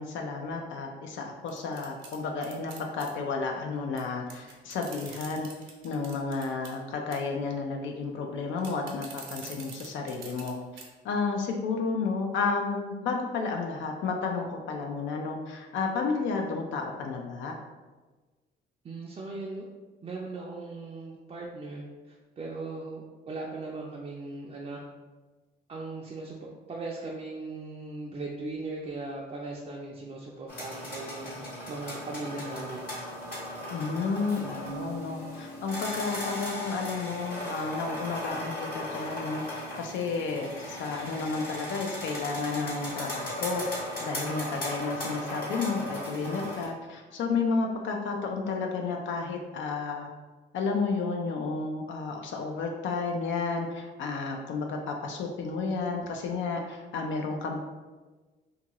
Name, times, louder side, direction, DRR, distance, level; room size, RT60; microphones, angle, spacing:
voice 1, 0.0-5.5 5.8-10.5 11.0-17.5 33.7-50.1 50.5-57.6, left 4 dB, 70° left, 2 dB, 0.4 m, -32 dB
sound 1, 1.5-3.1 4.0-4.1 4.3-6.8 7.1-7.4 8.6-10.5 10.8-10.9 11.3-11.4, right 5 dB, 80° right, 0.6 m, -45 dB
voice 2, 18.8-19.7 20.0-24.8 25.7-33.0, right 3 dB, 30° right, -3 dB, 0.4 m, -38 dB
sound 2, 30.5-46.7, left 1 dB, 50° left, 1.2 m, -37 dB
Keyboard (musical), 34.6-37.3, right 1 dB, 15° left, 0.6 m, -46 dB
2.7 x 2.4 x 2.9 m, 1.3 s
cardioid pair, 90°, 20 cm